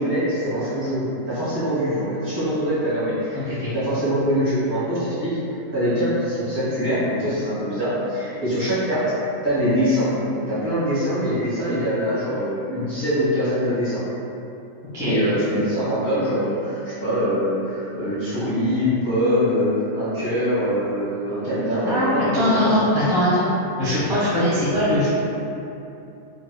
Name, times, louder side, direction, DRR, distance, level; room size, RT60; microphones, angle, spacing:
voice 1, 0.0-3.4 3.7-5.4 5.7-9.0 9.4-14.0 15.0-22.9, equal, 35° right, -13 dB, 1.5 m, -23 dB
voice 2, 21.8-23.4 23.8-25.1, left 1 dB, 5° right, -13 dB, 0.8 m, -21 dB
3.5 x 3.3 x 2.2 m, 2.8 s
omnidirectional pair, 1.6 m